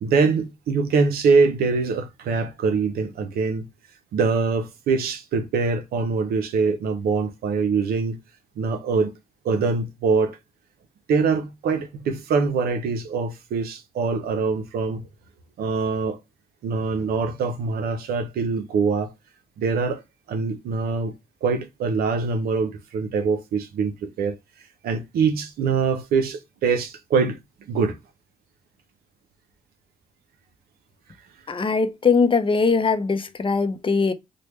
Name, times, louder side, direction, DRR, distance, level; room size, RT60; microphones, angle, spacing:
voice 1, 0.0-3.7 4.1-8.2 8.6-9.1 9.4-10.4 11.1-15.0 15.6-16.2 16.6-19.1 19.6-20.0 20.3-21.1 21.4-24.4 24.8-27.4 27.7-28.0, right 4 dB, 80° right, 0.6 m, -23 dB
voice 2, 31.5-34.1, left 4 dB, 35° left, 0.6 m, -21 dB
3.3 x 2.1 x 3.0 m
supercardioid pair, 55°, 15 cm